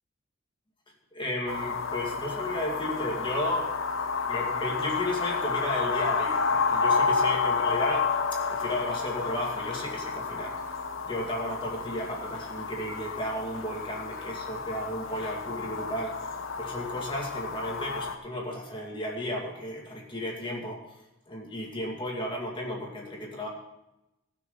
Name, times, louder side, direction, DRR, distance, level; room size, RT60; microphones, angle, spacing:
voice 1, 1.1-3.7 4.3-8.1 8.5-10.6 11.1-16.2 16.6-20.8 21.3-23.5, left 1 dB, 25° left, -1 dB, 2.3 m, -33 dB
sound 1, 1.5-18.2, left 5 dB, 75° left, 1.1 m, -30 dB
17.0 x 6.3 x 5.6 m, 0.91 s
head